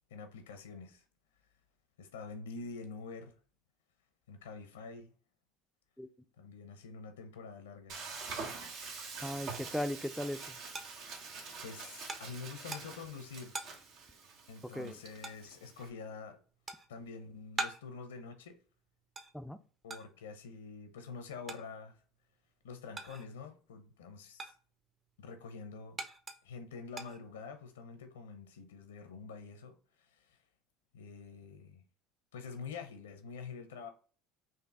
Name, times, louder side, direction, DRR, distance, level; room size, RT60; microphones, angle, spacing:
voice 1, 0.1-1.0 2.0-3.3 4.3-5.1 6.4-8.0 11.6-13.6 14.5-16.4 16.9-18.6 19.8-22.0 22.6-24.5 25.2-26.0 26.4-30.4 30.9-31.8 32.3-33.9, left 5 dB, 90° left, 0.7 m, -46 dB
Frying (food), 7.9-15.9, right 4 dB, 65° right, 1.0 m, -46 dB
voice 2, 9.2-10.6 14.6-15.0 19.3-19.6, equal, ahead, 0.4 m, -38 dB
sound 1, 10.7-23.5 23.9-27.8, right 2 dB, 30° right, 0.7 m, -46 dB
4.4 x 2.6 x 3.6 m
hypercardioid pair, 80°, 0 cm